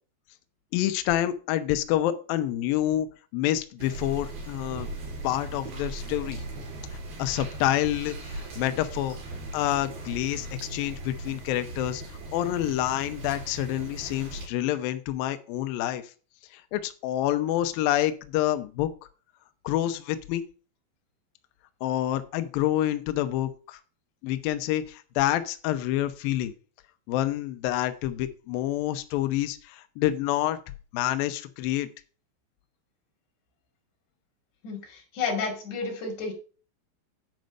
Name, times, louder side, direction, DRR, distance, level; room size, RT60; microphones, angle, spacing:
voice 1, 0.7-4.9 5.2-6.4 7.2-9.2 9.5-12.0 12.3-16.0 16.5-18.9 19.6-20.4 21.8-23.8 24.2-26.5 27.1-30.6 30.9-31.9, left 13 dB, 90° left, 9 dB, 2.0 m, -27 dB
sound 1, 3.8-14.5, right 2 dB, 60° right, 5.4 m, -38 dB
voice 2, 34.6-36.3, left 4 dB, 50° left, 2 dB, 3.7 m, -31 dB
9.3 x 5.2 x 6.4 m, 0.37 s
omnidirectional pair, 5.2 m